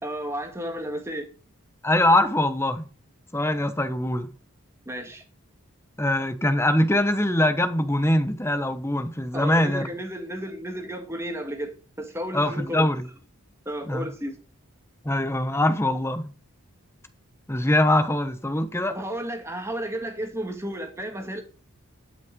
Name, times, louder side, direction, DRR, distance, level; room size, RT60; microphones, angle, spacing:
voice 1, 0.0-1.3 4.9-5.2 9.3-11.7 12.0-12.9 13.7-14.4 18.9-21.4, right 1 dB, 10° right, 1.9 m, -32 dB
voice 2, 1.8-2.9 3.3-4.3 6.0-9.9 12.3-13.0 13.9-14.1 15.0-16.2 17.5-19.0, left 1 dB, 10° left, 1.0 m, -23 dB
12.0 x 5.8 x 5.3 m
head